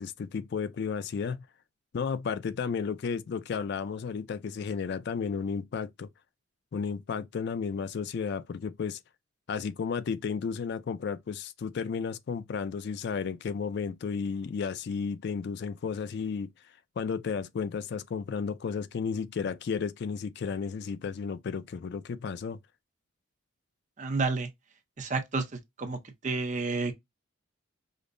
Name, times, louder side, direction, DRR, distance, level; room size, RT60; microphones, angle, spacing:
voice 1, 0.0-1.5 1.9-6.1 6.7-9.0 9.5-16.5 17.0-22.6, left 6 dB, 55° left, 0.3 m, -33 dB
voice 2, 24.0-24.5 25.0-25.4 25.8-26.0 26.2-26.9, right 3 dB, 35° right, 0.6 m, -29 dB
5.1 x 2.0 x 2.5 m
head